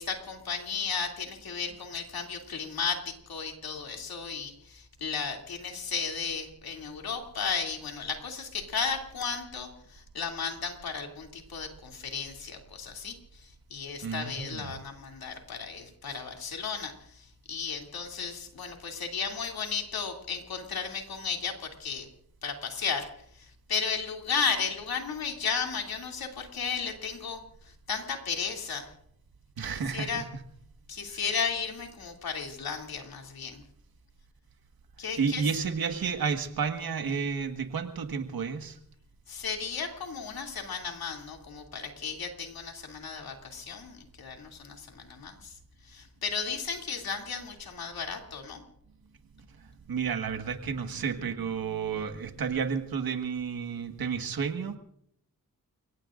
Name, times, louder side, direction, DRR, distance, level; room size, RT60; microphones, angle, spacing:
voice 1, 0.0-22.1 22.4-23.1 23.4-27.4 27.9-28.9 29.9-30.2 30.9-33.6 35.0-35.4 39.3-45.5 45.9-48.6, left 5 dB, 85° left, 2 dB, 2.9 m, -34 dB
voice 2, 14.0-14.7 29.6-30.2 31.1-31.2 35.2-38.8 49.6-54.8, right 6 dB, 85° right, 6 dB, 1.7 m, -31 dB
29.5 x 17.5 x 2.6 m, 0.70 s
cardioid pair, 50°, 35 cm